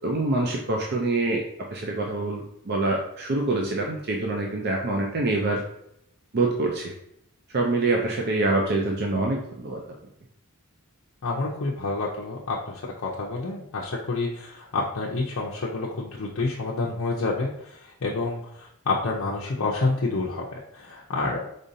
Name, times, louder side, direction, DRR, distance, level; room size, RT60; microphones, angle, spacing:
voice 1, 0.0-1.4 1.7-5.6 6.3-6.9 7.5-9.8, right 2 dB, 45° right, 0 dB, 0.6 m, -25 dB
voice 2, 11.2-17.7 18.0-20.4 20.7-21.4, left 3 dB, 60° left, -4 dB, 0.6 m, -28 dB
5.2 x 3.8 x 2.7 m, 0.76 s
head